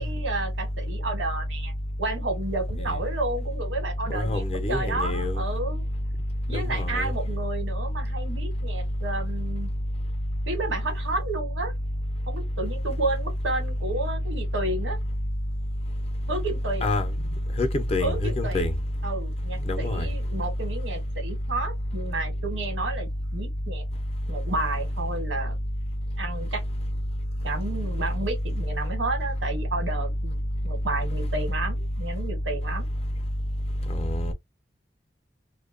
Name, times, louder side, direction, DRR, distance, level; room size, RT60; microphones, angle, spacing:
voice 1, 0.0-1.7 2.0-5.8 6.5-9.7 10.5-11.7 12.3-15.0 16.3-16.9 18.0-18.6 19.0-23.8 24.3-25.6 26.2-26.6 27.4-30.4 30.6-32.9, right 2 dB, 85° right, 1.1 m, -31 dB
voice 2, 4.1-5.4 6.5-7.1 16.8-17.1 17.6-18.7 19.7-20.1 33.9-34.3, left 1 dB, 30° left, 0.4 m, -26 dB
2.6 x 2.1 x 2.3 m
head